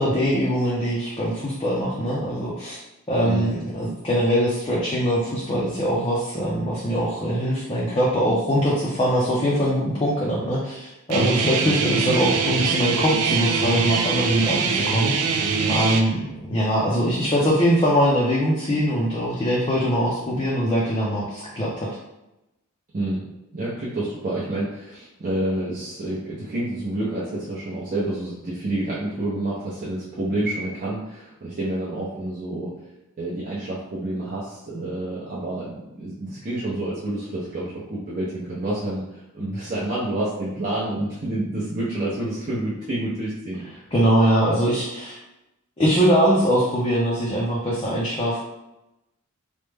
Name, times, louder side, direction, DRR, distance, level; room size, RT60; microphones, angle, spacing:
voice 1, 0.0-2.8 3.1-15.3 15.7-21.9 43.9-45.2 45.8-48.4, equal, 25° left, -6 dB, 0.5 m, -22 dB
voice 2, 3.2-3.5 11.6-11.8 22.9-23.2 23.5-32.7 33.2-43.9, right 1 dB, 35° right, -8 dB, 0.6 m, -28 dB
Guitar, 11.1-16.0, right 5 dB, 80° right, 0.4 m, -23 dB
3.1 x 2.1 x 3.3 m, 0.93 s
head